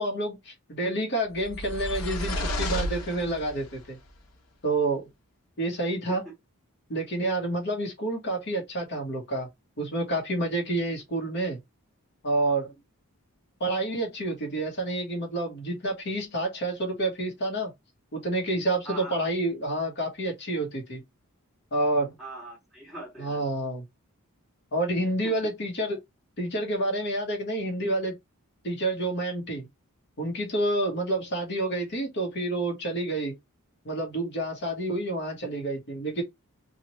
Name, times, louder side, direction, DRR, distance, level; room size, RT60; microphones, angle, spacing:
voice 1, 0.0-4.0 4.6-5.1 5.6-6.2 6.9-9.5 9.8-11.6 12.2-12.7 13.6-17.7 18.1-21.0 21.7-22.2 23.2-23.8 24.7-26.0 26.4-28.2 28.6-29.7 30.2-33.4 33.8-36.2, right 1 dB, 50° left, 1.1 m, -29 dB
sound 1, 1.3-3.7, left 1 dB, 90° left, 1.0 m, -32 dB
voice 2, 18.8-19.2 22.2-23.4 25.2-25.3, right 2 dB, ahead, 1.6 m, -41 dB
3.0 x 2.4 x 2.8 m
head